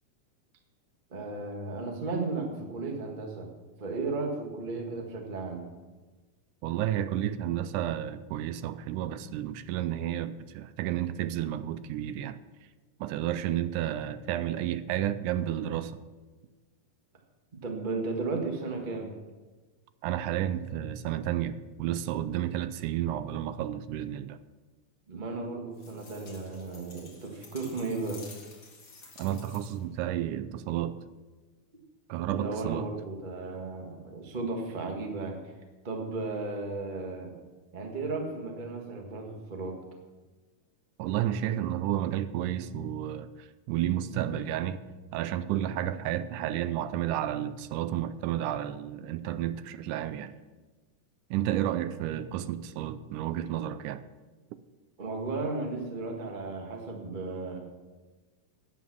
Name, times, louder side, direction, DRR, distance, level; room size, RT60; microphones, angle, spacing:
voice 1, 1.1-3.5 3.8-5.7 17.6-19.1 25.1-28.2 32.3-35.5 35.8-37.3 37.7-39.8 55.0-57.6, right 3 dB, 40° right, 2 dB, 0.6 m, -34 dB
voice 2, 6.6-12.4 13.0-15.9 20.0-24.4 29.2-31.0 32.1-32.9 41.0-50.3 51.3-54.0, right 11 dB, 80° right, 13 dB, 2.0 m, -31 dB
sound 1, 25.7-29.9, left 3 dB, 35° left, 2.1 m, -51 dB
11.0 x 8.6 x 6.1 m, 1.3 s
omnidirectional pair, 3.7 m